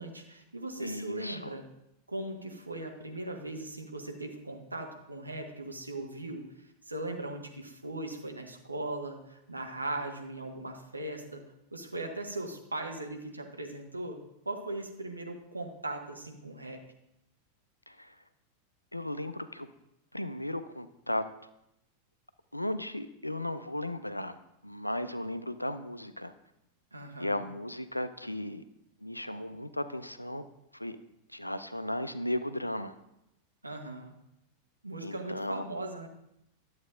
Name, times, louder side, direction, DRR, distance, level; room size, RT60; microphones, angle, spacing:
voice 1, 0.0-1.6 2.1-11.4 11.7-14.2 14.4-16.8 26.9-27.4 33.6-34.1 34.8-36.1, right 2 dB, 80° right, 3 dB, 0.9 m, -39 dB
voice 2, 0.8-1.5 17.9-18.1 18.9-19.7 20.1-21.3 22.5-24.4 24.6-26.3 27.2-28.6 29.0-30.4 30.7-31.0 31.3-33.0 35.0-35.6, left 1 dB, 85° left, 12 dB, 0.4 m, -35 dB
11.0 x 7.8 x 2.5 m, 0.83 s
figure-of-eight pair, 90°, 0 cm